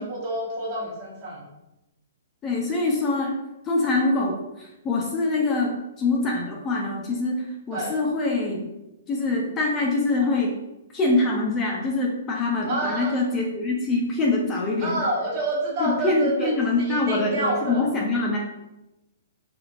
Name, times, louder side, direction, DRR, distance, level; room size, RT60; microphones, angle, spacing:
voice 1, 0.0-1.4 7.7-8.0 12.7-13.2 14.8-17.8, right 1 dB, 35° right, -4 dB, 0.9 m, -28 dB
voice 2, 2.4-3.4 3.7-8.7 9.1-10.6 10.9-15.0 15.8-18.4, left 2 dB, 20° left, -1 dB, 0.3 m, -24 dB
3.0 x 2.4 x 2.4 m, 0.94 s
hypercardioid pair, 160°, 0 cm